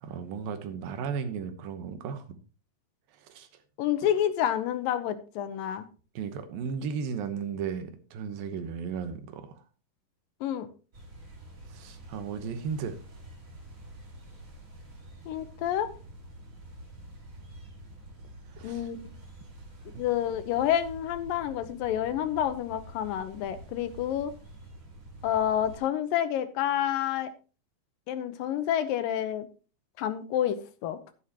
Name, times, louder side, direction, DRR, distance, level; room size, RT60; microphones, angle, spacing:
voice 1, 0.0-2.4 3.1-3.6 6.2-9.6 11.7-13.0 18.5-18.9 19.9-20.0, right 6 dB, 85° right, 9 dB, 2.9 m, -35 dB
voice 2, 3.8-5.9 10.4-10.7 15.3-15.9 18.6-19.1 20.0-24.3 25.2-27.3 28.1-29.5 30.0-31.0, left 10 dB, 80° left, 11 dB, 2.6 m, -29 dB
sound 1, 10.9-25.8, right 1 dB, 30° right, 2.0 m, -48 dB
11.0 x 11.0 x 2.9 m, 0.35 s
omnidirectional pair, 4.0 m